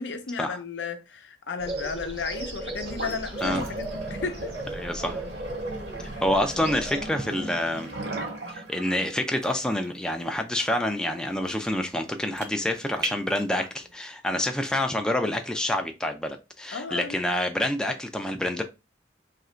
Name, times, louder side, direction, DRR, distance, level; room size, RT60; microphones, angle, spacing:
voice 1, 0.0-4.5 6.0-6.2 16.7-17.2, left 5 dB, 80° left, 0.6 m, -34 dB
sound 1, 1.6-7.0, right 2 dB, 35° right, 0.7 m, -36 dB
sound 2, 2.8-13.8, right 2 dB, 65° right, 1.1 m, -37 dB
voice 2, 4.7-5.3 6.2-7.9 8.5-18.6, left 1 dB, 5° left, 0.4 m, -27 dB
2.9 x 2.5 x 4.2 m
head